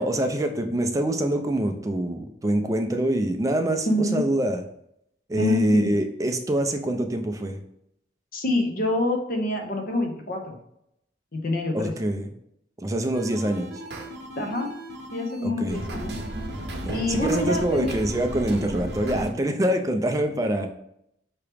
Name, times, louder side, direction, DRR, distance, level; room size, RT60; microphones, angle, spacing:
voice 1, 0.0-4.6 5.3-7.6 11.7-12.3 12.8-13.7 15.4-15.8 16.8-20.7, right 1 dB, 20° right, 5 dB, 0.4 m, -25 dB
voice 2, 3.9-4.2 5.4-5.9 8.3-10.6 11.3-11.9 14.4-14.7 15.1-16.2 16.9-18.0, left 1 dB, 50° left, 2 dB, 0.7 m, -26 dB
sound 1, 13.1-19.3, right 1 dB, 70° right, 0.8 m, -34 dB
4.7 x 2.9 x 3.3 m, 0.77 s
head